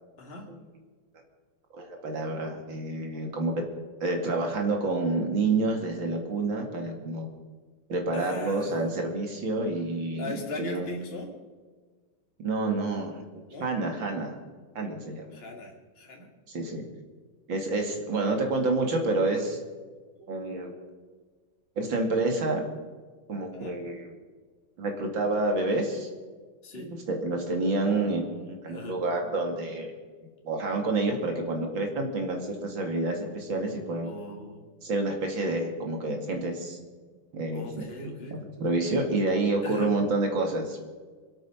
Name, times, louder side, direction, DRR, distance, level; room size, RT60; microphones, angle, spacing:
voice 1, 0.2-0.5 8.1-8.9 10.2-11.3 13.5-13.7 15.3-16.3 20.2-20.7 23.5-23.8 26.6-26.9 28.7-29.0 34.0-34.6 37.5-38.4 39.6-39.9, left 2 dB, 30° left, 0 dB, 2.5 m, -39 dB
voice 2, 1.7-3.5 4.0-7.3 7.9-10.9 12.4-13.2 13.6-14.3 14.7-15.4 16.5-16.8 17.5-19.6 20.3-20.7 21.8-22.6 23.3-24.2 24.8-26.1 26.7-29.9 30.4-34.1 34.8-36.8 37.3-37.7 38.0-40.9, right 2 dB, 65° right, 3 dB, 3.0 m, -28 dB
25.5 x 9.0 x 5.6 m, 1.5 s
omnidirectional pair, 2.2 m